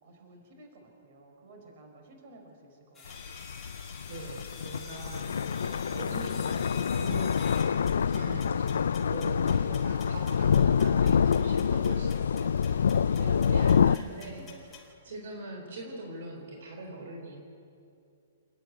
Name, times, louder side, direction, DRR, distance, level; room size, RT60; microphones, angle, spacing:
voice 1, 0.0-3.3 9.3-9.4 10.0-10.2 12.2-13.6 14.3-14.4, right 2 dB, 40° right, 2 dB, 4.3 m, -54 dB
sound 1, 2.9-14.9, left 5 dB, 10° left, 2.2 m, -49 dB
sound 2, 3.1-14.0, left 7 dB, 90° left, 0.4 m, -26 dB
voice 2, 4.0-12.8 13.2-14.5 15.0-17.4, right 2 dB, 60° right, 2 dB, 3.7 m, -42 dB
28.5 x 10.0 x 9.4 m, 2.5 s
hypercardioid pair, 170°, 0 cm